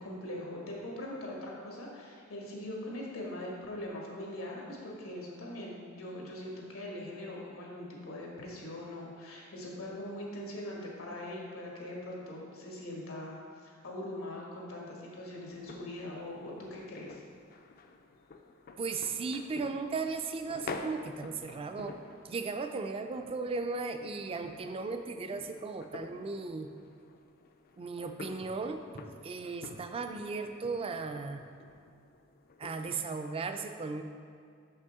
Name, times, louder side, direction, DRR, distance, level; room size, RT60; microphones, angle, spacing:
voice 1, 0.0-13.4 13.6-17.2, left 1 dB, 90° left, -3 dB, 1.4 m, -41 dB
sound 1, 15.5-32.9, left 4 dB, 45° left, 0.4 m, -49 dB
voice 2, 18.8-22.0 22.2-26.7 27.8-31.4 32.6-34.0, right 4 dB, 25° right, 7 dB, 0.3 m, -36 dB
6.2 x 5.5 x 3.5 m, 2.3 s
head